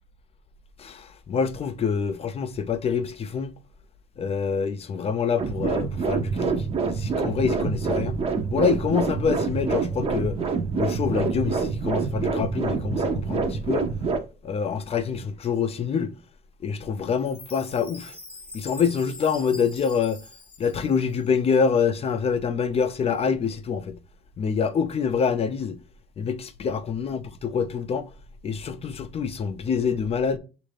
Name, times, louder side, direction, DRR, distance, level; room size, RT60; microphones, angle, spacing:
voice 1, 0.8-3.5 4.2-8.1 8.5-10.4 10.8-13.9 14.4-16.1 16.6-18.1 18.5-20.2 20.6-24.0 24.4-25.8 26.2-28.0 28.4-30.4, left 6 dB, 35° left, 0.4 m, -26 dB
sound 1, 5.4-14.2, right 5 dB, 35° right, 0.6 m, -26 dB
Chime, 17.2-21.4, left 2 dB, 5° left, 0.7 m, -44 dB
6.2 x 2.5 x 3.3 m
cardioid pair, 110°, 17 cm